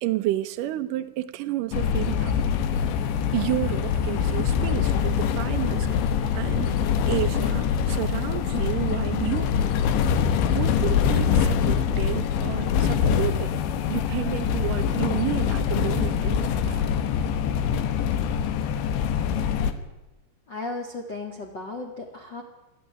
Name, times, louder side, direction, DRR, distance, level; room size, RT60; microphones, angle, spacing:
voice 1, 0.0-2.5 3.3-6.0 6.3-6.7 7.1-9.8 10.5-13.6 13.9-16.8, right 15 dB, 85° right, 8 dB, 1.9 m, -31 dB
sound 1, 1.7-19.7, left 7 dB, 85° left, 3.6 m, -24 dB
voice 2, 20.5-22.4, left 2 dB, 40° left, 0 dB, 1.6 m, -35 dB
20.5 x 13.0 x 9.6 m, 1.0 s
omnidirectional pair, 5.1 m